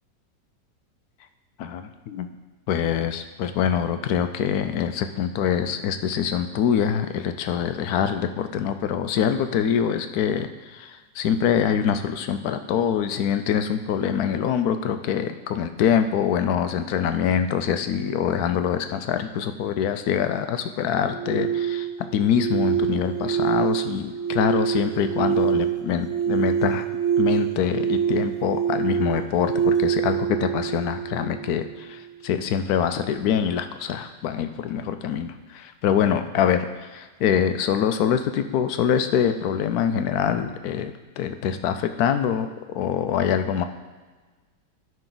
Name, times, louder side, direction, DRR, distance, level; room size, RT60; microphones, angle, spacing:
voice 1, 1.6-2.3 2.7-26.9 27.2-42.5 42.7-43.6, left 8 dB, 70° left, 9 dB, 0.9 m, -24 dB
sound 1, 21.0-32.0, right 8 dB, 65° right, 1.2 m, -25 dB
12.0 x 5.3 x 3.8 m, 1.3 s
omnidirectional pair, 1.9 m